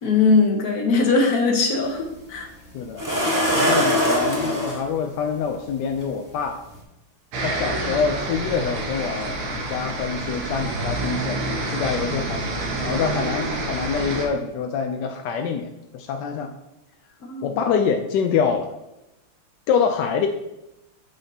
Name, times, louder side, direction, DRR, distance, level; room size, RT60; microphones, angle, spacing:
voice 1, 0.0-2.5 17.2-17.5, left 4 dB, 50° left, 1 dB, 1.4 m, -20 dB
sound 1, 1.8-1.9 3.0-4.8 6.0-6.1 6.6-6.8, equal, 15° right, 0.8 m, -21 dB
voice 2, 2.7-3.0 3.5-6.6 7.4-16.5 17.4-18.7 19.7-20.3, left 6 dB, 80° left, 5 dB, 1.0 m, -26 dB
sound 2, 7.3-14.3, right 2 dB, 90° right, 2.0 m, -28 dB
8.8 x 5.2 x 2.8 m, 0.91 s
omnidirectional pair, 2.4 m